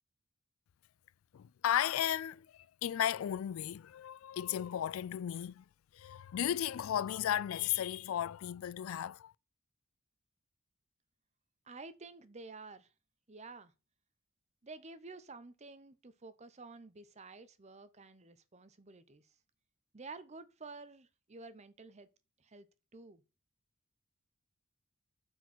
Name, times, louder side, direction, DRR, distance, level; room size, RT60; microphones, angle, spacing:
voice 1, 1.3-5.6 5.9-9.3, left 10 dB, 80° left, 0.3 m, -35 dB
voice 2, 11.7-12.9 13.3-13.7 14.6-19.3 19.9-22.1 22.4-22.7 22.9-23.2, right 3 dB, 35° right, 0.7 m, -51 dB
8.2 x 4.5 x 6.2 m
head